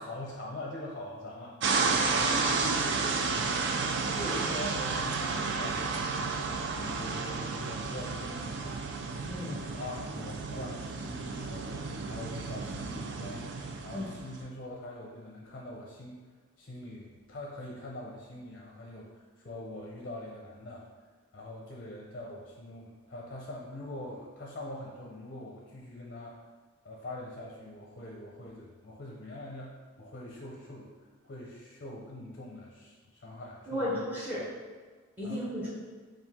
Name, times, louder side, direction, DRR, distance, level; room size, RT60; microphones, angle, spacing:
voice 1, 0.0-1.5 4.1-8.8 9.5-13.5 13.8-16.2 16.6-20.8 21.3-26.4 26.8-29.7 30.0-30.9 31.2-34.0 34.4-34.5 35.2-35.7, left 1 dB, 40° left, -2 dB, 0.5 m, -43 dB
sound 1, 1.6-14.4, right 4 dB, 55° right, 0.3 m, -32 dB
voice 2, 2.2-3.1 9.2-9.6 13.9-14.1 33.7-34.4 35.2-35.7, equal, 10° right, -6 dB, 0.8 m, -34 dB
4.4 x 2.5 x 3.5 m, 1.5 s
head